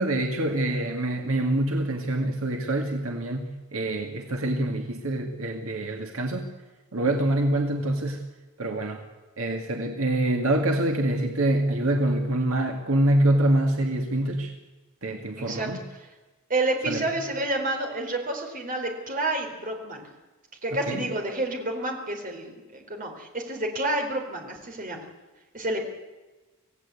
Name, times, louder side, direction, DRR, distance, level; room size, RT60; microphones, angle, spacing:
voice 1, 0.0-6.5 6.9-8.2 8.6-9.0 9.4-14.5 15.0-15.8 16.9-17.0 20.9-21.1, right 1 dB, 70° right, 3 dB, 2.0 m, -25 dB
voice 2, 15.4-15.7 16.0-16.1 16.5-20.0 20.6-25.0 25.5-25.8, right 2 dB, 40° right, 3 dB, 4.0 m, -29 dB
26.0 x 17.0 x 8.4 m, 1.2 s
head